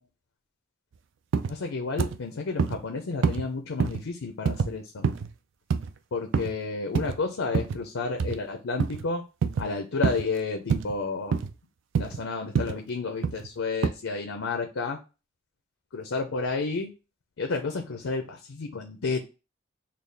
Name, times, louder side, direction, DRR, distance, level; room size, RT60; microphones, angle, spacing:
sound 1, 1.3-1.6 2.0-2.2 2.6-2.8 3.2-3.5 3.8-4.0 4.5-4.7 5.0-5.3 5.7-5.9 6.3-6.6 6.9-7.2 7.5-7.8 8.2-8.4 8.8-9.0 9.4-9.7 10.0-10.2 10.7-10.9 11.3-11.5 11.9-12.2 12.6-12.8 13.2-13.5 13.8-13.9, right 6 dB, 65° right, 0.4 m, -26 dB
voice 1, 1.5-5.1 6.1-9.2 9.6-11.3 12.0-15.0 15.9-16.9 17.4-19.2, left 4 dB, 75° left, 4 dB, 0.5 m, -31 dB
4.0 x 2.3 x 3.3 m, 0.30 s
head